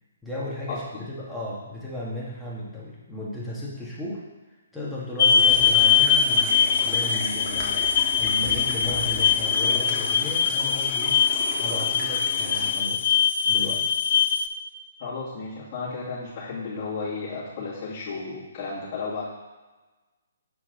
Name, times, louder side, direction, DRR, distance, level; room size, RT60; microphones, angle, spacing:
voice 1, 0.2-4.3 4.7-11.2 11.6-13.2 13.5-13.9, left 1 dB, ahead, -8 dB, 1.7 m, -35 dB
Kettle - Whistling - Close, 5.2-14.5, left 7 dB, 55° left, 0.4 m, -22 dB
sound 1, 5.3-12.7, left 2 dB, 20° left, 1.6 m, -36 dB
voice 2, 15.0-19.2, left 4 dB, 35° left, -9 dB, 2.2 m, -33 dB
6.5 x 4.5 x 3.8 m, 1.2 s
hypercardioid pair, 140°, 0 cm